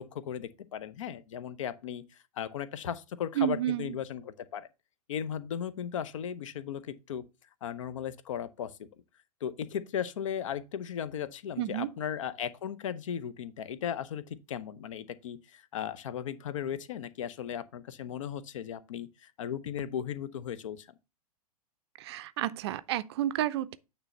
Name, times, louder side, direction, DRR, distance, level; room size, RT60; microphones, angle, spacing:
voice 1, 0.0-2.0 2.4-4.7 5.1-7.2 7.6-8.7 9.4-20.9, left 9 dB, 55° left, 0.7 m, -36 dB
voice 2, 3.4-4.0 11.6-11.9 22.0-23.8, right 12 dB, 45° right, 0.5 m, -31 dB
8.9 x 3.4 x 5.3 m
figure-of-eight pair, 105°, 20 cm